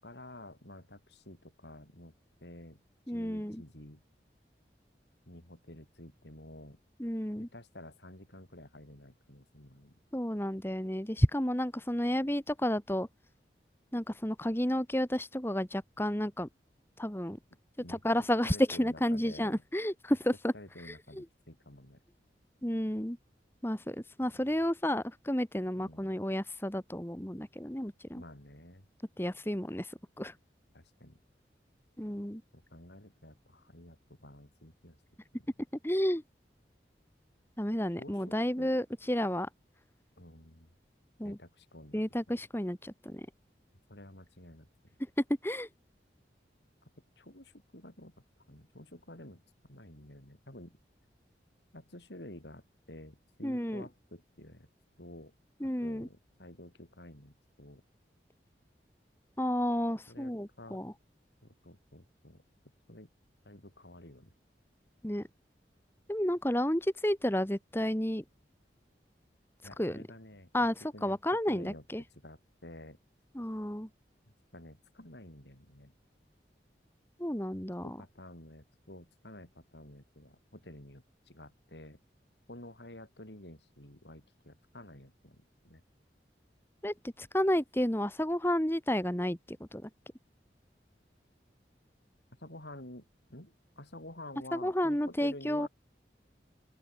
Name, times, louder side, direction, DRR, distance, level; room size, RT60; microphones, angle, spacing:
voice 1, 0.0-2.1 2.4-2.8 3.1-4.0 5.3-6.8 7.4-10.0 17.8-18.0 18.4-19.6 20.5-22.0 24.4-24.5 25.8-26.1 28.1-28.9 30.7-31.2 32.5-35.0 38.0-38.7 40.2-40.7 41.2-42.0 42.3-42.4 43.9-44.7 47.2-48.1 48.5-50.8 51.7-54.7 55.0-55.3 55.6-57.8 60.1-60.8 61.4-62.4 62.9-63.1 63.4-64.3 69.6-70.5 70.9-71.2 71.5-71.8 72.2-73.0 74.5-75.9 77.8-82.0 82.5-85.8 92.4-95.7, left 1 dB, 75° left, 6.1 m, -50 dB
voice 2, 3.1-3.6 7.0-7.5 10.1-13.1 13.9-16.5 17.0-17.4 17.9-20.5 20.8-21.3 22.6-23.2 23.6-28.2 29.2-30.3 32.0-32.4 35.8-36.2 37.6-39.5 41.2-41.4 41.9-43.3 45.4-45.7 53.4-53.8 55.6-56.1 59.4-60.9 65.0-65.3 66.1-68.2 69.8-70.0 70.5-72.0 73.3-73.9 77.2-78.0 86.8-89.9 94.5-95.7, equal, 15° left, 1.8 m, -31 dB
open air
head